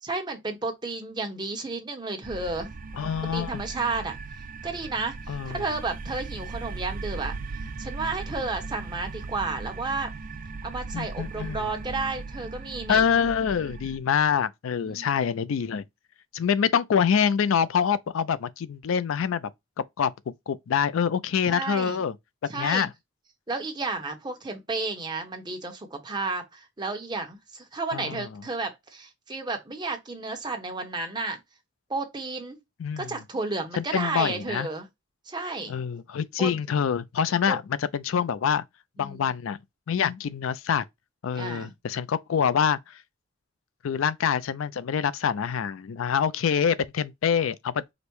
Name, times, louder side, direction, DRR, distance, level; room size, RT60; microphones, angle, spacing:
voice 1, 0.0-2.7 3.3-4.2 4.6-10.1 10.6-13.1 14.8-15.1 21.5-22.0 22.5-22.9 23.5-31.4 31.9-32.6 33.0-34.9 35.3-35.7 36.4-36.5 37.5-37.6 39.0-39.3 41.4-41.7, right 3 dB, 20° right, 1.0 m, -32 dB
sound 1, 2.2-14.0, right 4 dB, 45° right, 0.4 m, -38 dB
voice 2, 3.0-3.6 5.3-5.6 10.9-11.7 12.9-15.8 16.3-19.5 20.0-20.1 20.5-22.2 22.5-22.9 27.9-28.2 32.8-33.1 33.7-34.7 35.7-37.6 37.9-38.6 39.0-39.6 39.9-40.8 41.2-43.0 43.8-47.8, left 7 dB, 85° left, 0.4 m, -25 dB
5.0 x 2.1 x 4.5 m
head